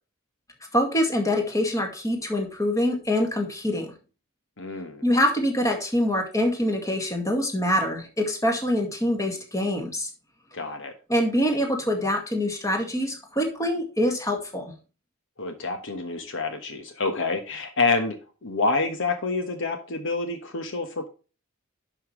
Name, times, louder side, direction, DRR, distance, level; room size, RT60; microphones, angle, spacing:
voice 1, 0.7-3.9 5.0-10.1 11.1-14.7, left 1 dB, 15° left, 3 dB, 2.1 m, -25 dB
voice 2, 4.6-5.0 10.5-10.9 15.4-18.2 18.4-21.1, left 3 dB, 60° left, 7 dB, 1.3 m, -27 dB
11.0 x 5.8 x 3.2 m, 0.34 s
head